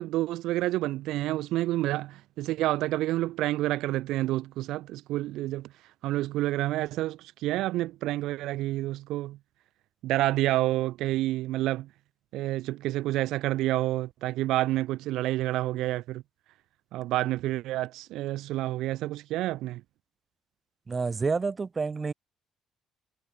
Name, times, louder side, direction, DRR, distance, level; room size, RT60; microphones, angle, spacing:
voice 1, 0.0-5.7 6.0-9.4 10.0-11.9 12.3-16.2 16.9-19.8, right 16 dB, 80° right, 0.8 m, -29 dB
voice 2, 20.9-22.1, right 4 dB, 20° right, 2.2 m, -29 dB
cardioid pair, 155°, 0 cm